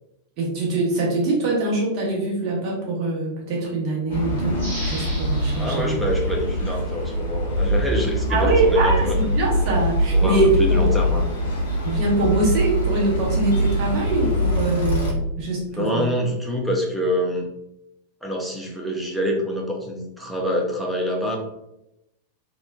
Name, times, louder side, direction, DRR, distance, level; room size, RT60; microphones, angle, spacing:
voice 1, 0.4-6.0 8.3-10.9 11.8-16.1, right 2 dB, 40° right, -3 dB, 0.9 m, -23 dB
sound 1, 4.1-15.1, equal, 70° left, 0.6 m, -23 dB
sound 2, 4.6-7.2 7.7-7.8, right 1 dB, 70° right, 1.1 m, -38 dB
voice 2, 5.5-9.2 10.1-10.4 10.7-11.2 15.7-17.5 18.2-21.4, equal, ahead, -1 dB, 0.6 m, -26 dB
3.0 x 2.1 x 2.2 m, 0.85 s
figure-of-eight pair, 90°, 0 cm